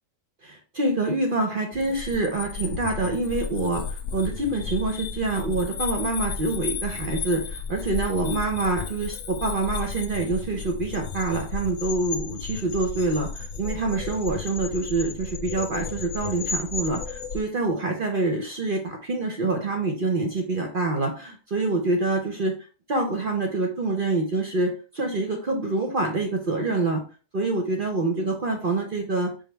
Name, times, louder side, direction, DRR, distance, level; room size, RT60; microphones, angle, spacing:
voice 1, 0.4-22.5 22.9-27.0 27.3-29.3, right 2 dB, 50° right, 3 dB, 0.8 m, -26 dB
sound 1, 1.7-17.4, left 5 dB, 70° left, 0.9 m, -34 dB
5.1 x 2.3 x 4.4 m, 0.36 s
omnidirectional pair, 1.4 m